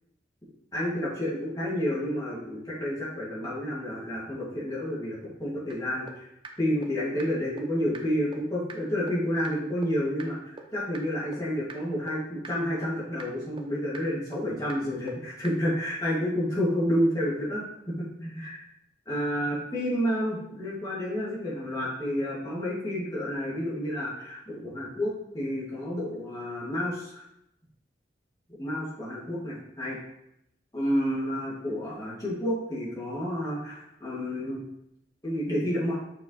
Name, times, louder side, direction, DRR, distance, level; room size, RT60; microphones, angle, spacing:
voice 1, 0.7-6.3 6.6-10.4 10.7-18.6 19.1-27.2 28.6-30.0 30.7-34.6 35.2-35.9, equal, 20° left, -8 dB, 2.5 m, -30 dB
sound 1, 5.7-5.8 6.1-6.2 6.4-6.5 6.8-6.9 7.2-7.3 7.6-7.7 7.9-8.0 8.3-8.4 8.7-8.8 9.1-9.2 9.4-9.5 9.8-9.9 10.2-10.3 10.6-10.7 10.9-11.0 11.3-11.4 11.7-11.8 12.1-12.2 12.4-12.5 12.8-12.9 13.2-13.3 13.6-13.7 13.9-14.0 14.3-14.4 14.7-14.8 15.1-15.2 15.4-15.5, right 4 dB, 25° right, 0.6 m, -41 dB
6.6 x 5.9 x 3.3 m, 0.79 s
head